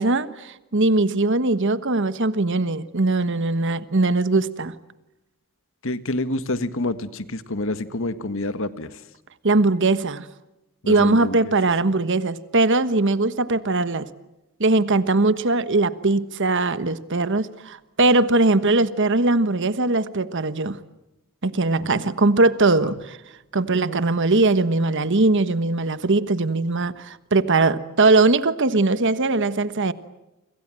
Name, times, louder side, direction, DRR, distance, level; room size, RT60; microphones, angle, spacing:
voice 1, 0.0-4.7 9.4-10.3 10.9-14.1 14.6-20.8 21.4-23.2 23.5-29.9, right 2 dB, 55° right, 14 dB, 1.3 m, -20 dB
voice 2, 5.8-8.9 10.8-11.5 21.8-22.1 22.8-22.9, left 2 dB, 60° left, 12 dB, 1.6 m, -28 dB
29.5 x 26.0 x 7.7 m, 0.94 s
head